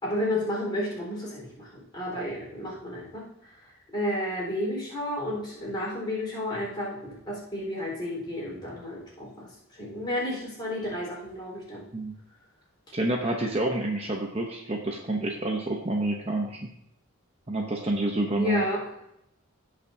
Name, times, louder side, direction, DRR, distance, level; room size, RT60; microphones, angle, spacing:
voice 1, 0.0-3.3 3.9-9.5 9.7-11.9 18.3-18.8, left 1 dB, 20° left, -5 dB, 4.1 m, -31 dB
voice 2, 12.9-16.7 17.5-18.7, right 1 dB, 25° right, 1 dB, 0.8 m, -28 dB
17.0 x 5.8 x 2.7 m, 0.80 s
head